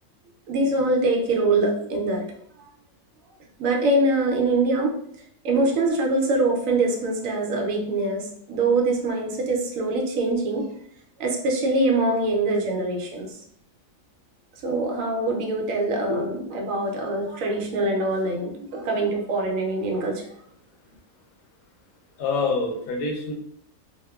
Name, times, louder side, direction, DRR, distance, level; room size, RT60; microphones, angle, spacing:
voice 1, 0.5-2.2 3.6-5.0 5.4-10.7 11.2-13.4 14.6-20.3, right 2 dB, 75° right, 1 dB, 0.9 m, -23 dB
voice 2, 22.2-23.3, left 3 dB, 85° left, 1 dB, 1.1 m, -26 dB
2.8 x 2.0 x 2.2 m, 0.66 s
omnidirectional pair, 1.4 m